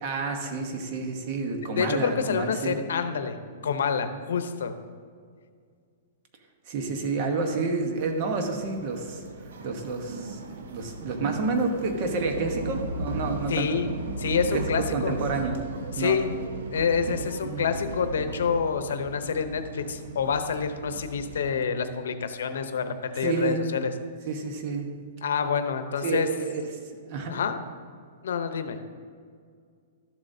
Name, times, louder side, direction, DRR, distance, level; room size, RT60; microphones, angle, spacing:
voice 1, 0.0-2.8 6.7-9.2 9.6-13.7 14.5-15.6 16.0-16.2 17.4-17.7 23.2-23.6 24.2-24.9 26.0-26.6 27.1-27.4, right 4 dB, 35° right, 4 dB, 1.1 m, -29 dB
voice 2, 1.8-3.4 3.6-4.7 13.5-13.9 14.2-15.1 16.0-16.3 16.7-23.9 25.2-26.3 27.3-27.6 28.2-28.8, left 6 dB, 85° left, 9 dB, 0.8 m, -27 dB
sound 1, 8.0-21.6, right 2 dB, 85° right, 0.8 m, -36 dB
13.0 x 7.3 x 2.7 m, 2.1 s
hypercardioid pair, 165°, 0 cm